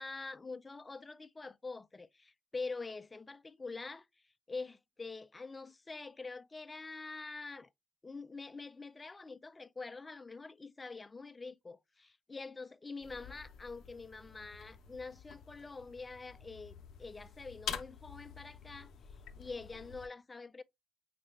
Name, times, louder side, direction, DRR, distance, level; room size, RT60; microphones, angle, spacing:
voice 1, 0.0-7.7 8.0-18.9 19.4-20.6, left 3 dB, 25° left, 0.4 m, -45 dB
sound 1, 13.0-20.1, left 8 dB, 75° left, 0.5 m, -48 dB
5.7 x 2.1 x 3.1 m
cardioid pair, 90°, 0 cm